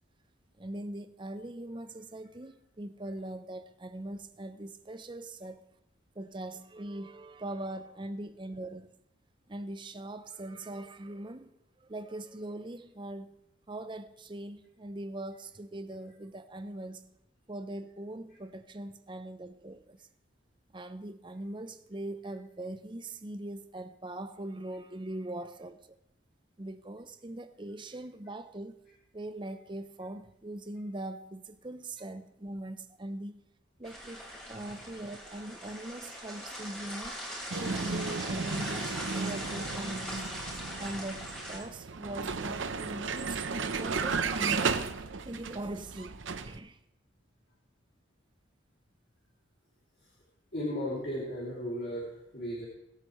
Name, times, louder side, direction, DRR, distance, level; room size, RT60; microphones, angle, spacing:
voice 1, 0.6-5.7 6.1-8.9 9.5-13.3 13.7-17.1 17.5-20.1 20.7-26.0 26.6-28.8 29.1-33.3 33.8-37.2 37.6-40.3 40.7-46.8, right 1 dB, 25° right, 0.6 m, -41 dB
sound 1, 33.8-41.6, equal, 5° left, 3.4 m, -41 dB
Vehicle, 37.5-46.6, right 5 dB, 75° right, 0.8 m, -34 dB
voice 2, 50.5-52.7, equal, 50° left, 2.8 m, -35 dB
22.5 x 8.2 x 3.1 m
head